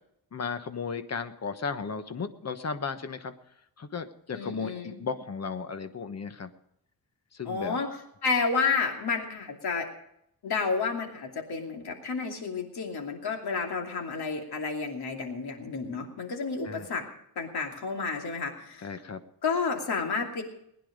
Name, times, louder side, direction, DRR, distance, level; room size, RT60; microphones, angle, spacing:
voice 1, 0.3-3.3 3.8-6.5 7.3-7.8 16.6-16.9 18.8-19.2, left 5 dB, 40° left, 10 dB, 1.2 m, -35 dB
voice 2, 4.3-5.0 7.5-7.9 8.2-9.9 10.4-17.0 17.4-18.9 19.4-20.4, left 4 dB, 75° left, 2 dB, 2.8 m, -30 dB
20.0 x 10.0 x 5.2 m, 0.75 s
wide cardioid pair, 125°, 39 cm